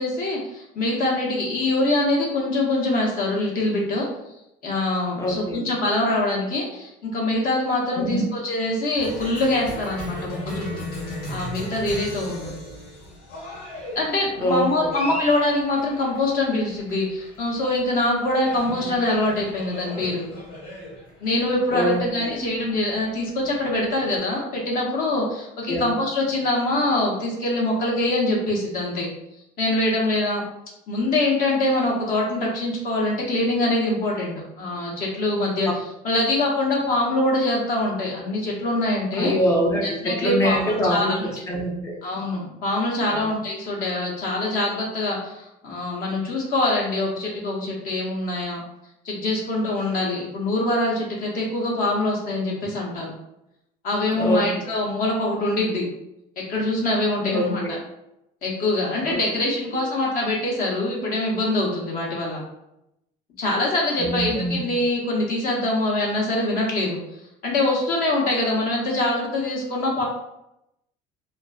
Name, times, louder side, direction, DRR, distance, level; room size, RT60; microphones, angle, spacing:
voice 1, 0.0-4.1 4.6-10.7 11.3-12.5 14.0-20.2 21.2-29.1 29.6-30.4 30.9-35.7 36.0-39.3 39.8-41.2 42.0-48.6 49.0-53.1 53.8-55.9 56.5-57.8 58.4-62.4 63.4-67.0 67.4-70.1, left 2 dB, 50° left, -2 dB, 0.8 m, -24 dB
voice 2, 5.2-5.6 7.9-8.3 12.4-12.5 14.4-14.9 21.7-22.4 25.7-25.8 39.2-42.0 43.1-43.3 54.1-54.5 57.3-57.8 59.0-59.8 64.0-64.6, equal, 15° left, -1 dB, 0.5 m, -25 dB
Cheering, 9.0-24.1, equal, 70° left, 1.2 m, -37 dB
2.4 x 2.4 x 2.3 m, 0.85 s
cardioid pair, 140°, 18 cm